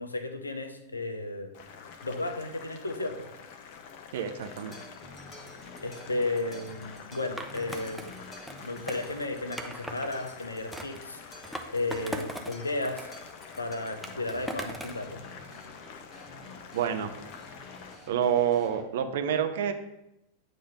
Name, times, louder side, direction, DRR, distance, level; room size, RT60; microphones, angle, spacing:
voice 1, 0.0-1.5 2.0-3.3 5.8-8.0 8.6-13.1 13.6-15.2, left 2 dB, 80° left, 8 dB, 0.7 m, -34 dB
Boiling, 1.5-17.9, left 6 dB, 45° left, 0.8 m, -47 dB
voice 2, 4.1-4.7 16.7-17.1 18.1-19.7, right 9 dB, 55° right, 7 dB, 0.7 m, -27 dB
sound 1, 4.4-18.8, left 1 dB, 20° left, 1.4 m, -50 dB
Skateboard, 7.4-10.1 10.7-12.6 12.8-15.0, right 1 dB, ahead, 0.6 m, -40 dB
9.0 x 3.4 x 5.4 m, 0.88 s
figure-of-eight pair, 90°, 0 cm